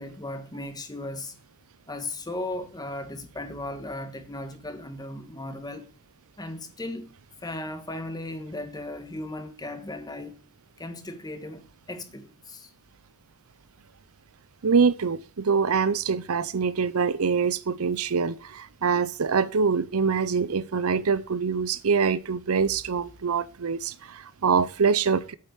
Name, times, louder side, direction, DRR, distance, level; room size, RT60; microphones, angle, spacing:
voice 1, 0.0-1.3 1.9-5.9 6.4-7.1 7.4-10.4 10.8-12.7, left 1 dB, 20° left, 1.4 m, -36 dB
voice 2, 14.6-25.3, right 5 dB, 75° right, 0.6 m, -24 dB
8.7 x 7.7 x 8.2 m
head